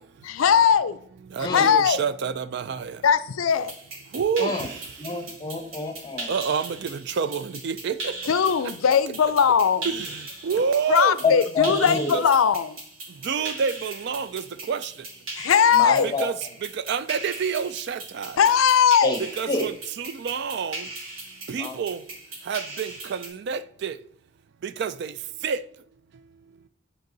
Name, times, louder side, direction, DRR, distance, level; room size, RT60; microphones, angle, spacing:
voice 1, 0.2-1.0 1.4-2.0 3.0-3.7 8.3-9.9 10.9-12.8 15.4-16.1 18.4-19.1, left 7 dB, 85° left, 0.4 m, -19 dB
voice 2, 1.3-2.9 4.1-4.5 6.3-8.1 9.8-10.1 10.4-11.2 11.8-12.2 13.3-14.4 14.7-14.8 16.2-16.3 16.9-18.3 19.4-19.7 20.0-20.8 21.5-22.0 22.5-23.9 24.8-25.1 25.4-25.6, right 6 dB, 55° right, 0.3 m, -28 dB
sound 1, 3.5-23.3, right 2 dB, 85° right, 2.4 m, -39 dB
voice 3, 4.4-4.7 5.0-6.3 11.2-12.2 15.7-16.3 19.0-19.2 19.5-19.7 21.6-21.8, left 3 dB, 20° left, 0.9 m, -27 dB
8.2 x 4.6 x 3.9 m
head